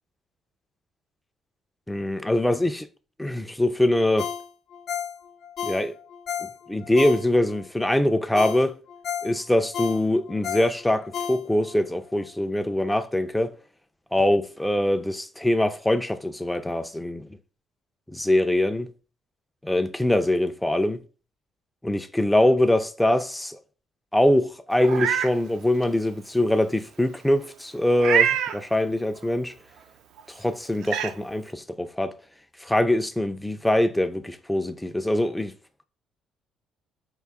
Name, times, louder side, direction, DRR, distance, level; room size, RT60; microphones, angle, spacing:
voice 1, 1.9-2.9 3.2-4.3 5.6-5.9 6.7-8.8 9.2-13.5 14.1-17.3 18.1-18.9 19.6-21.0 21.8-23.6 24.1-29.5 30.4-32.1 32.6-35.5, left 1 dB, 5° left, 0.4 m, -23 dB
Ringtone, 4.2-7.6 8.0-8.1 8.4-11.8 12.2-12.3, left 8 dB, 55° left, 0.5 m, -33 dB
Meow, 24.8-25.3 25.8-25.9 28.0-28.6 30.2-30.3 30.8-31.1, right 8 dB, 75° right, 0.5 m, -24 dB
4.7 x 2.4 x 3.5 m
cardioid pair, 125°, 0 cm